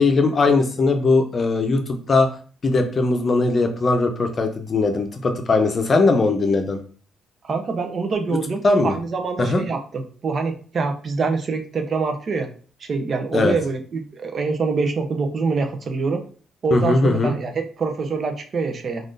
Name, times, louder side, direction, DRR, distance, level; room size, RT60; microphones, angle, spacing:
voice 1, 0.0-2.3 2.6-6.8 8.6-8.9 9.4-9.6 13.3-13.6 16.7-17.3, left 3 dB, 40° left, 5 dB, 0.6 m, -19 dB
voice 2, 7.4-12.5 12.8-16.2 16.6-19.1, right 4 dB, 45° right, 5 dB, 0.5 m, -25 dB
3.4 x 2.4 x 2.5 m, 0.41 s
cardioid pair, 90°, 0 cm